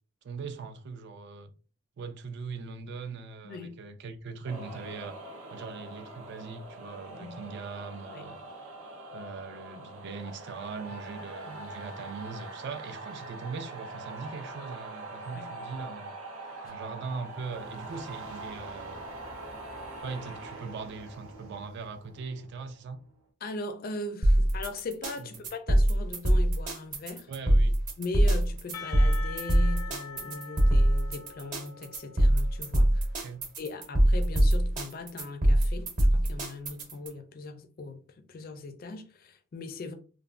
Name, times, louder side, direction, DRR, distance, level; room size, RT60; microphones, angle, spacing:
voice 1, 0.2-1.5 2.0-5.2 5.5-8.4 9.1-16.1 16.6-19.0 20.0-23.0 25.2-25.3 27.3-27.7 33.2-33.4, right 4 dB, 55° right, 0.3 m, -40 dB
sound 1, 4.5-23.0, right 2 dB, 85° right, 0.8 m, -43 dB
voice 2, 23.4-27.3 28.0-33.3 33.6-39.9, left 3 dB, 45° left, 0.4 m, -39 dB
sound 2, 24.2-37.1, right 1 dB, 40° right, 0.9 m, -23 dB
Percussion / Church bell, 28.7-33.3, left 6 dB, 85° left, 0.6 m, -44 dB
3.1 x 2.1 x 2.4 m
head